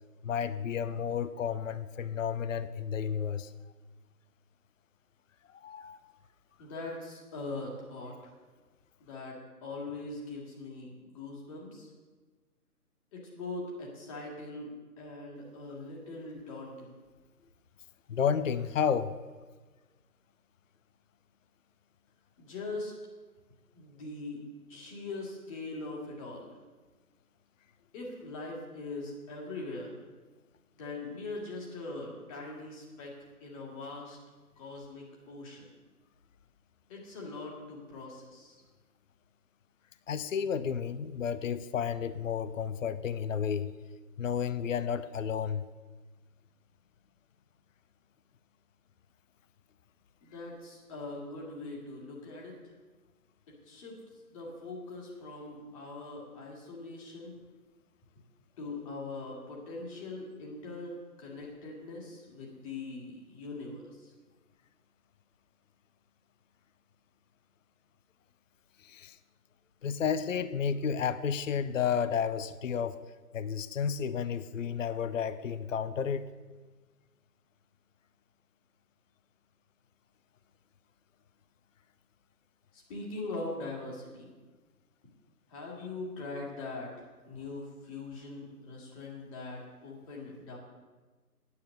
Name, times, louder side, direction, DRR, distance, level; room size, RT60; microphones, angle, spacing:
voice 1, 0.2-3.5 5.5-6.1 18.1-19.1 40.1-43.7 44.2-45.7 68.8-69.2 69.8-73.0 73.3-76.3, left 7 dB, 55° left, 14 dB, 0.6 m, -32 dB
voice 2, 6.6-8.1 9.0-11.9 13.1-14.7 15.0-17.0 22.4-22.9 23.8-24.4 24.7-26.5 27.9-29.9 30.8-33.1 33.4-34.2 34.6-35.7 36.9-38.6 50.2-52.5 53.7-54.0 54.3-57.3 58.6-64.1 82.7-84.3 85.5-86.9 87.2-90.6, left 2 dB, 20° left, -2 dB, 2.1 m, -41 dB
9.6 x 8.8 x 6.5 m, 1.3 s
figure-of-eight pair, 150°, 46 cm